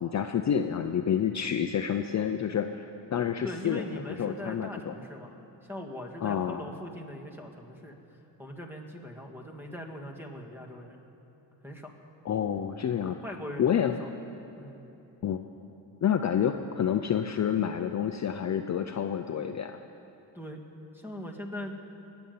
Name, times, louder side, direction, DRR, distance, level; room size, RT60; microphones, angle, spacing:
voice 1, 0.0-2.8 3.1-4.9 6.2-6.6 12.2-13.2 13.6-13.9 15.2-15.4 16.0-19.8, left 8 dB, 40° left, 7 dB, 0.6 m, -28 dB
voice 2, 3.4-5.4 5.6-8.0 8.4-11.0 11.6-11.9 13.0-14.1 14.6-14.8 20.3-20.6 20.9-21.7, left 1 dB, 5° right, 2 dB, 2.0 m, -41 dB
20.0 x 7.1 x 9.3 m, 2.9 s
cardioid pair, 85°, 42 cm